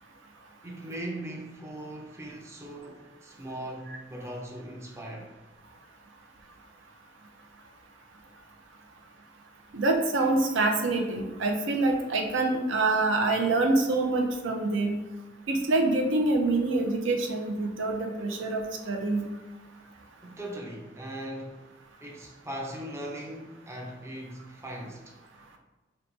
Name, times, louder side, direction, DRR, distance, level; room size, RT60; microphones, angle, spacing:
voice 1, 0.6-5.3 20.2-21.6 22.0-25.2, right 1 dB, 15° right, -1 dB, 0.4 m, -39 dB
voice 2, 9.7-15.0 15.5-19.3, right 2 dB, 85° right, 3 dB, 0.5 m, -26 dB
2.9 x 2.2 x 3.9 m, 1.2 s
head